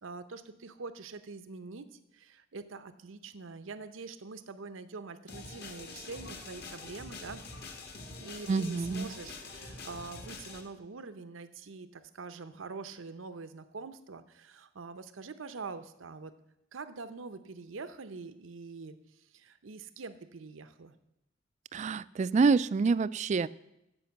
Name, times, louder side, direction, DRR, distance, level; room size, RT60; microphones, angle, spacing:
voice 1, 0.0-7.4 8.2-16.3 16.7-19.0 19.3-21.0, right 4 dB, 90° right, 11 dB, 0.7 m, -44 dB
sound 1, 5.3-10.6, left 3 dB, 55° left, 1.7 m, -45 dB
voice 2, 8.5-9.1 21.7-23.5, right 4 dB, 35° right, 18 dB, 0.3 m, -27 dB
15.0 x 5.4 x 7.0 m, 0.86 s
head